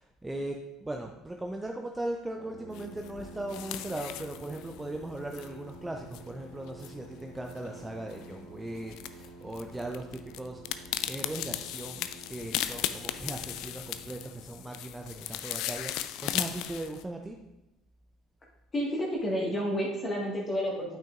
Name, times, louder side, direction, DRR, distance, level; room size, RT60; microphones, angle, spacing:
voice 1, 0.0-10.6 11.1-17.4, right 1 dB, 15° right, 2 dB, 0.6 m, -38 dB
Brass instrument, 2.4-14.6, right 3 dB, 60° right, 1.5 m, -50 dB
sound 1, 2.7-17.0, left 12 dB, 65° left, 0.3 m, -38 dB
voice 2, 18.7-21.0, equal, 30° left, -3 dB, 1.7 m, -30 dB
8.7 x 5.8 x 2.5 m, 0.93 s
hypercardioid pair, 65°, 0 cm